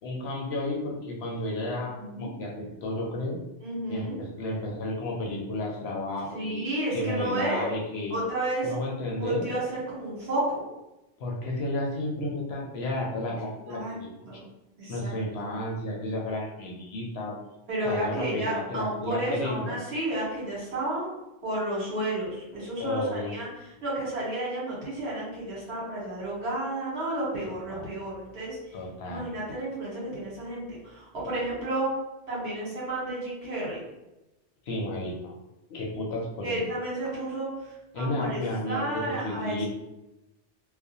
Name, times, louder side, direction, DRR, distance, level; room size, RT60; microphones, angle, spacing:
voice 1, 0.0-3.4 3.9-6.6 6.9-8.1 8.6-9.5 11.2-14.4 14.9-17.3 17.8-19.8 22.8-23.4 27.4-27.9 28.7-29.2 34.6-35.3 35.7-36.6 37.9-39.6, left 1 dB, 70° left, -2 dB, 0.8 m, -32 dB
voice 2, 1.9-2.3 3.6-4.2 6.3-7.7 8.1-8.7 9.2-10.6 13.7-14.0 14.3-14.5 14.8-15.1 17.7-21.1 21.4-23.5 23.8-28.6 29.0-31.9 32.3-33.8 36.4-39.7, right 1 dB, 65° right, -6 dB, 1.3 m, -31 dB
2.4 x 2.1 x 2.7 m, 0.95 s
omnidirectional pair, 1.2 m